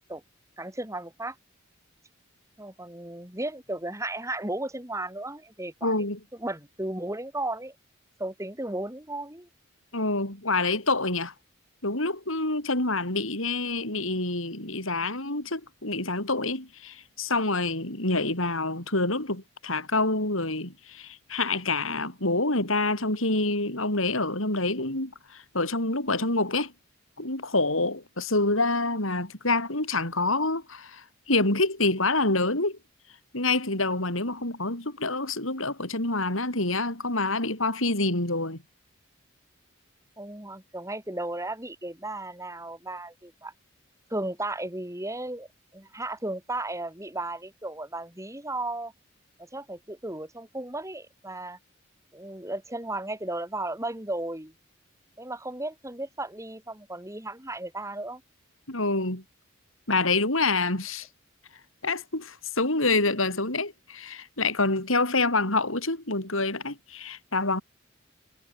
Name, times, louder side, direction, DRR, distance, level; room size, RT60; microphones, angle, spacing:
voice 1, 0.6-1.4 2.6-5.9 6.3-7.7 8.2-9.5 40.2-43.5 44.1-45.5 45.7-48.9 49.4-51.6 52.1-54.5 55.2-58.2, right 2 dB, 15° right, 6.7 m, -35 dB
voice 2, 5.8-6.2 9.9-11.3 11.8-26.7 27.2-32.8 33.3-38.6 58.7-59.2 59.9-61.1 61.8-67.6, left 2 dB, 80° left, 7.9 m, -27 dB
head